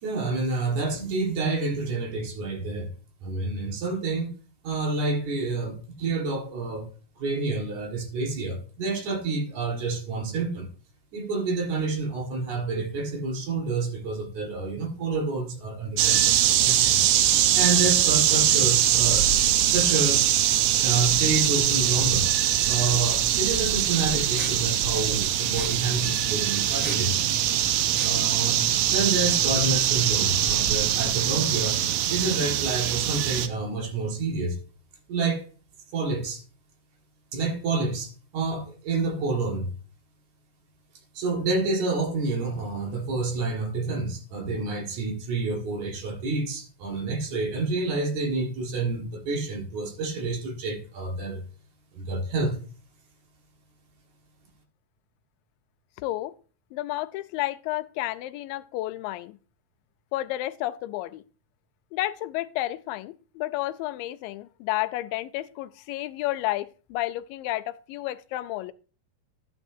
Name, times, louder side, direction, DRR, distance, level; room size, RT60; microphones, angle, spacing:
voice 1, 0.0-2.9 3.2-4.3 4.6-10.7 11.1-17.0 17.5-19.3 19.6-20.3 20.8-22.3 22.7-27.2 28.0-28.6 28.9-31.8 32.1-34.6 35.1-35.5 35.9-36.4 37.3-39.7 41.1-51.4 51.9-52.6, right 3 dB, 60° right, 2.9 m, -28 dB
sound 1, 16.0-33.5, right 11 dB, 90° right, 2.6 m, -22 dB
sound 2, 23.0-28.3, equal, 5° right, 3.9 m, -44 dB
voice 2, 56.0-56.3 56.7-59.4 60.1-61.2 61.9-68.7, left 16 dB, 85° left, 2.3 m, -31 dB
12.0 x 8.4 x 2.7 m
omnidirectional pair, 4.0 m